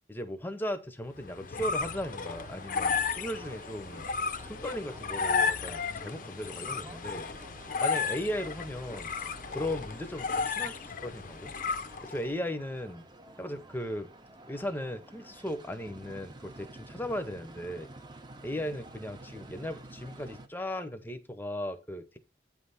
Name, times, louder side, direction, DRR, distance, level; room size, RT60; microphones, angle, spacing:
voice 1, 0.1-4.1 4.4-7.2 7.8-9.1 9.5-11.5 12.0-13.0 13.4-14.1 14.5-17.9 18.4-22.2, equal, 10° left, 0.7 m, -37 dB
sound 1, 1.2-12.3, left 5 dB, 50° left, 0.6 m, -33 dB
sound 2, 2.1-20.5, right 2 dB, 25° right, 0.7 m, -51 dB
8.7 x 3.3 x 5.6 m
head